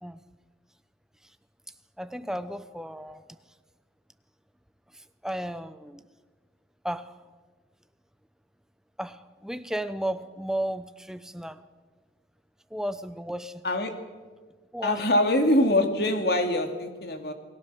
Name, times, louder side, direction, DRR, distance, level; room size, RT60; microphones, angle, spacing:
voice 1, 2.0-3.2 4.9-6.0 6.8-7.1 9.0-11.6 12.7-13.6 14.7-15.1, right 1 dB, 5° right, 11 dB, 0.8 m, -34 dB
voice 2, 14.8-17.3, left 1 dB, 55° left, 5 dB, 2.6 m, -24 dB
28.5 x 20.0 x 7.0 m, 1.4 s
head